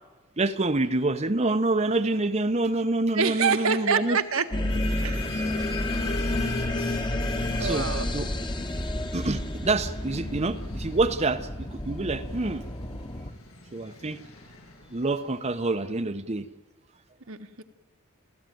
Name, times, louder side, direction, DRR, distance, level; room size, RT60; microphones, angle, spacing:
voice 1, 0.4-4.2 7.6-8.3 9.1-12.6 13.7-14.2 14.9-16.5, right 2 dB, 30° right, 8 dB, 0.9 m, -27 dB
voice 2, 3.2-4.5 4.9-5.3 7.6-8.1 17.3-17.6, right 5 dB, 75° right, 7 dB, 1.6 m, -26 dB
sound 1, 4.4-15.7, left 2 dB, 90° left, 7.1 m, -42 dB
sound 2, 4.5-13.3, left 1 dB, 20° left, 1.4 m, -30 dB
29.5 x 16.0 x 9.3 m, 1.2 s
head